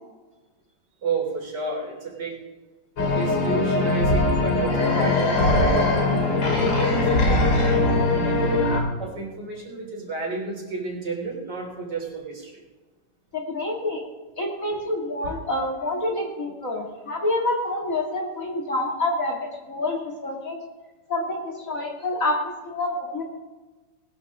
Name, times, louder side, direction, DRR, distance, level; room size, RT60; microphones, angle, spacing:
voice 1, 1.0-2.4 3.1-8.6 9.0-12.6 14.7-14.8 15.2-15.4, right 4 dB, 65° right, -1 dB, 4.1 m, -32 dB
sound 1, 3.0-8.8, left 2 dB, 85° left, 3.3 m, -21 dB
voice 2, 13.3-14.0 14.4-20.6 21.1-23.2, left 2 dB, 45° left, 0 dB, 2.7 m, -27 dB
20.0 x 12.5 x 3.7 m, 1.2 s
omnidirectional pair, 2.0 m